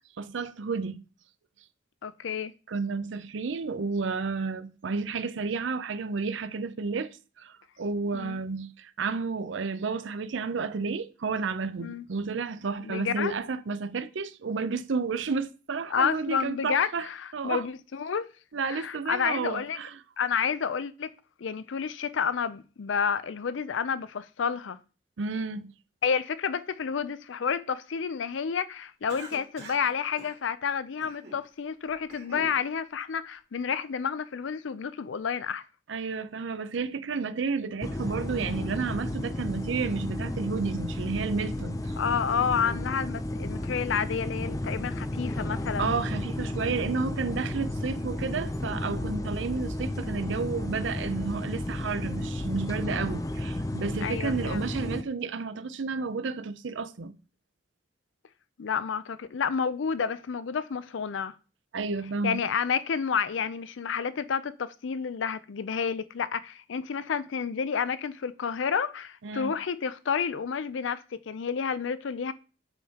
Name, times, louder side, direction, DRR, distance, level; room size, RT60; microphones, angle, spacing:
voice 1, 0.2-1.0 2.7-17.1 17.3-17.7 18.5-20.0 25.2-25.7 35.9-41.9 45.8-57.1 61.7-62.4 69.2-69.5, right 4 dB, 75° right, 0.5 m, -31 dB
voice 2, 2.0-2.5 8.1-8.4 11.8-12.1 12.8-13.4 15.9-18.3 18.6-19.8 20.2-21.1 21.4-24.8 26.0-35.6 42.0-45.9 54.0-54.7 58.6-61.4 62.2-72.3, left 6 dB, 80° left, 0.5 m, -30 dB
Cough, 29.1-29.9 30.2-30.4 31.0-31.4 31.9-32.6, right 2 dB, 60° right, 2.8 m, -45 dB
sound 1, 37.8-55.0, left 1 dB, 20° left, 0.5 m, -33 dB
7.9 x 5.6 x 2.9 m
head